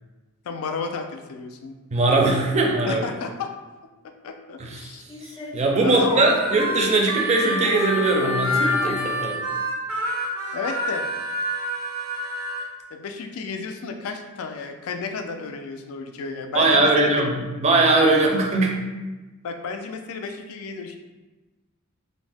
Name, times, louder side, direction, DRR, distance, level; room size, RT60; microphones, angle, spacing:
voice 1, 0.5-1.8 2.8-3.5 4.0-5.0 5.4-5.5 5.8-6.3 10.5-11.1 12.9-17.1 19.4-21.0, left 4 dB, 85° left, 6 dB, 0.3 m, -32 dB
voice 2, 1.9-3.0 4.6-4.9 5.5-9.4 16.5-18.7, right 2 dB, 30° right, 1 dB, 0.4 m, -20 dB
Female singing, 5.1-7.3 7.6-9.7, left 2 dB, 20° left, 0.5 m, -35 dB
Harmonica, 6.1-12.6, equal, 80° right, 0.6 m, -28 dB
2.5 x 2.0 x 3.3 m, 1.2 s
head